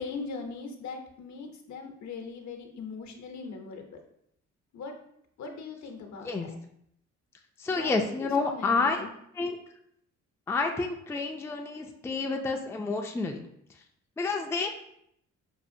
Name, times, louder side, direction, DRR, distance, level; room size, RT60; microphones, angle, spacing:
voice 1, 0.0-3.9 4.7-4.9 5.4-6.3 7.7-9.1, left 4 dB, 70° left, 4 dB, 0.8 m, -40 dB
voice 2, 7.6-9.1 9.3-9.6 10.5-13.4 14.2-14.7, left 4 dB, 10° left, 3 dB, 0.4 m, -29 dB
5.5 x 2.4 x 2.6 m, 0.73 s
cardioid pair, 90°, 30 cm